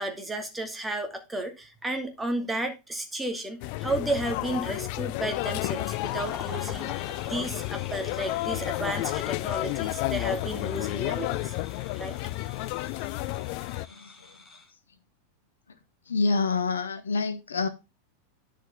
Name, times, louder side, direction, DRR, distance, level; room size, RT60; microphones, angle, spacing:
voice 1, 0.0-11.5 12.0-12.2, right 1 dB, 10° right, 2.2 m, -33 dB
sound 1, 3.6-13.9, left 19 dB, 45° left, 0.4 m, -31 dB
sound 2, 5.6-14.7, left 3 dB, 20° left, 2.9 m, -47 dB
voice 2, 13.9-14.4 16.1-17.7, left 4 dB, 70° left, 1.1 m, -27 dB
10.0 x 6.6 x 3.7 m
figure-of-eight pair, 90°, 0 cm